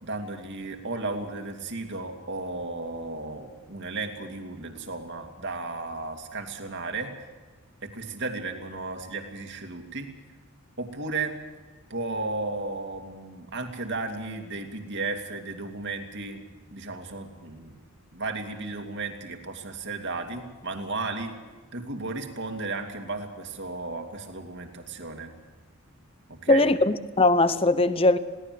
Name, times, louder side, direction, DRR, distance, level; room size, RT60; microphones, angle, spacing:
voice 1, 0.0-7.1 7.8-10.1 10.8-11.4 11.9-16.4 16.7-17.8 18.1-21.3 21.7-25.3 26.3-26.7, right 3 dB, 55° right, 2.7 m, -34 dB
voice 2, 26.5-28.2, left 2 dB, 25° left, 0.9 m, -20 dB
21.5 x 17.5 x 7.8 m
head